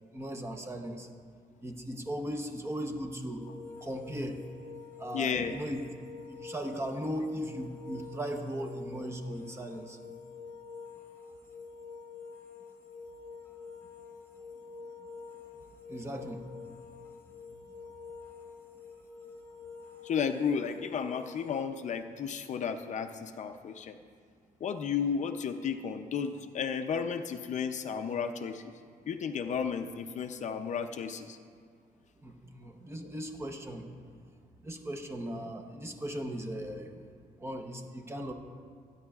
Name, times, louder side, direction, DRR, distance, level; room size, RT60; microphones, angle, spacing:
voice 1, 0.1-1.1 1.6-3.4 3.8-4.4 5.0-5.8 6.3-10.0 15.9-16.4 32.2-33.9 34.6-37.0 37.4-38.3, equal, 15° right, 3 dB, 0.8 m, -37 dB
sound 1, 3.4-21.6, left 5 dB, 15° left, 1.3 m, -48 dB
voice 2, 5.1-5.6 20.0-24.0 24.6-28.7 29.1-31.4, left 6 dB, 50° left, 7 dB, 0.5 m, -33 dB
25.0 x 9.8 x 2.4 m, 2.1 s
wide cardioid pair, 170°, 16 cm